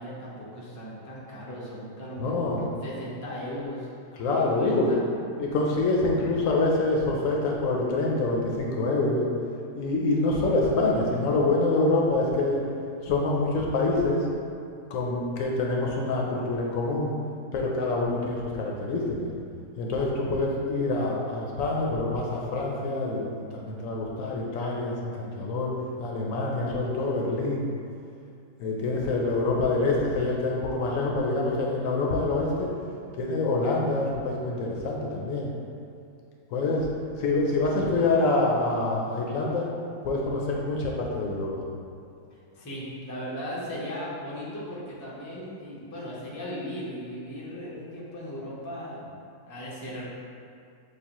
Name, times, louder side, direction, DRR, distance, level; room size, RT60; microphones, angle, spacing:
voice 1, 0.0-3.9 4.3-5.0 42.3-49.2 49.5-50.0, equal, 20° left, -6 dB, 0.5 m, -37 dB
voice 2, 2.2-2.6 4.2-4.9 5.4-9.2 9.8-12.6 13.0-14.3 14.9-17.1 17.5-19.3 19.8-25.7 26.0-27.7 28.6-32.7 33.2-35.5 36.5-36.9 37.2-39.7 40.0-41.5, left 2 dB, 70° left, -2 dB, 0.9 m, -26 dB
6.7 x 2.4 x 2.9 m, 2.4 s
omnidirectional pair, 1.5 m